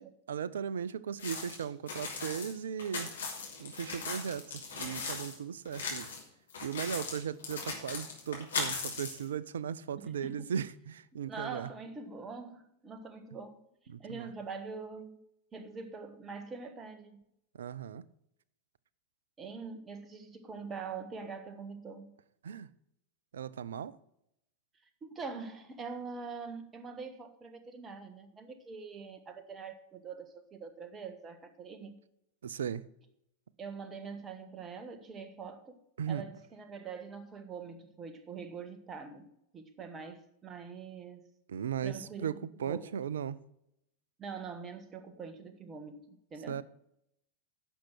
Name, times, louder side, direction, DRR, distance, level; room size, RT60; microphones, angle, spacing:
voice 1, 0.0-3.1 3.6-6.1 6.6-11.7 13.9-14.3 17.6-18.0 22.4-22.7 23.3-24.0 32.4-32.9 36.0-36.2 41.5-43.4 46.5-46.6, right 8 dB, 65° right, 0.4 m, -37 dB
sound 1, 1.2-5.3 5.6-6.2 6.5-9.2, left 4 dB, 65° left, 2.8 m, -38 dB
voice 2, 9.9-10.5 11.2-13.6 13.8-15.2 15.5-17.2 19.4-22.1 25.0-32.0 33.6-35.8 36.1-39.3 39.5-41.3 41.8-42.3 42.6-42.9 44.2-46.6, right 5 dB, 20° right, 1.3 m, -44 dB
10.0 x 6.3 x 6.1 m
figure-of-eight pair, 90°, 0 cm